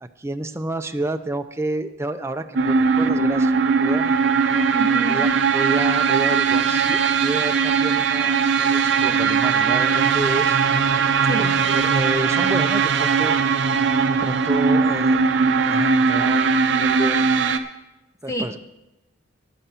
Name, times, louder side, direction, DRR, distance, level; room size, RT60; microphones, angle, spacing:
voice 1, 0.0-4.2 5.1-5.3 5.5-10.6 11.4-13.4 14.1-15.2 15.6-17.2 18.2-18.6, right 1 dB, 15° right, 7 dB, 0.5 m, -29 dB
sound 1, 2.6-17.6, right 5 dB, 60° right, 0.6 m, -19 dB
voice 2, 4.7-5.2 11.3-11.6 18.3-18.6, right 1 dB, 15° left, 6 dB, 0.9 m, -28 dB
12.5 x 9.9 x 4.4 m, 0.98 s
head